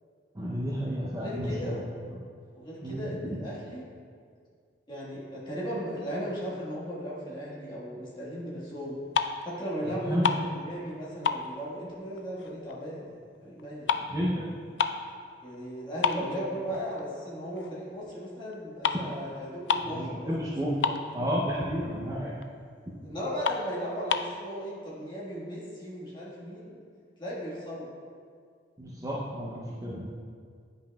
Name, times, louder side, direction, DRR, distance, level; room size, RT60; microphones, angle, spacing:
voice 1, 0.3-1.8 2.1-2.2 2.8-3.4 9.8-10.3 14.0-14.5 16.2-16.3 16.7-16.8 19.9-20.8 21.1-22.3 28.8-30.1, equal, 20° right, -6 dB, 0.6 m, -32 dB
voice 2, 1.1-1.8 2.5-3.8 4.9-9.0 9.4-13.9 15.4-20.3 20.6-21.0 23.0-26.8 27.2-27.9, equal, 25° left, -7 dB, 1.5 m, -36 dB
sound 1, 8.9-9.6 9.9-11.0 11.2-12.8 13.1-15.1 15.5-15.6 16.0-17.1 17.5-17.7 18.5-18.6 18.8-19.1 19.3-19.4 19.6-20.0 20.3-20.4 20.6-21.5 21.9-22.0 22.4-22.5 22.9-23.0 23.4-24.4, left 6 dB, 80° left, 0.3 m, -30 dB
9.3 x 5.3 x 2.3 m, 2.1 s
head